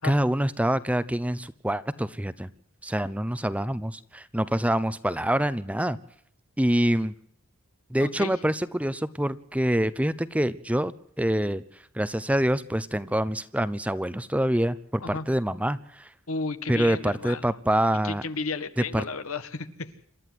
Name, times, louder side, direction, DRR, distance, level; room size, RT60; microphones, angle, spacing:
voice 1, 0.0-2.5 2.8-6.0 6.6-7.1 7.9-11.6 11.9-16.1 16.7-18.2 18.8-19.0, right 1 dB, 5° right, 14 dB, 0.8 m, -26 dB
voice 2, 8.0-8.3 15.0-15.3 16.3-17.5 18.0-20.1, left 4 dB, 80° left, 11 dB, 1.8 m, -33 dB
28.0 x 13.0 x 7.8 m, 0.65 s
head